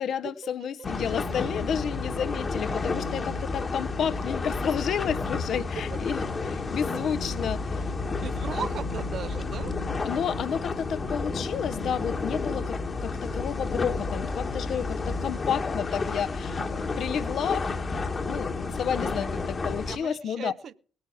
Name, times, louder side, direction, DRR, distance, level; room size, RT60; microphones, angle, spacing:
voice 1, 0.0-7.9 10.0-20.5, left 8 dB, 60° left, 0.7 m, -31 dB
sound 1, 0.8-20.0, left 3 dB, 40° left, 1.3 m, -31 dB
voice 2, 8.1-9.7 17.0-17.1 19.9-20.7, right 7 dB, 60° right, 0.7 m, -37 dB
19.0 x 7.9 x 6.0 m
hypercardioid pair, 45°, 0 cm